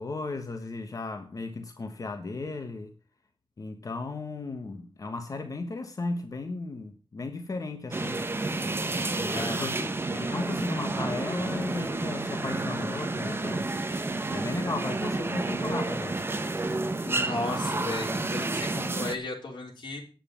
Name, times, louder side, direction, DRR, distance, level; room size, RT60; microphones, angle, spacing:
voice 1, 0.0-2.9 3.6-8.2 9.2-13.7 14.3-16.2, left 3 dB, 40° left, 1.2 m, -35 dB
sound 1, 7.9-19.2, right 2 dB, 25° right, 1.0 m, -30 dB
voice 2, 9.3-9.9 17.0-20.0, left 2 dB, 55° left, 4.1 m, -35 dB
10.0 x 7.9 x 7.2 m
wide cardioid pair, 160°, 9 cm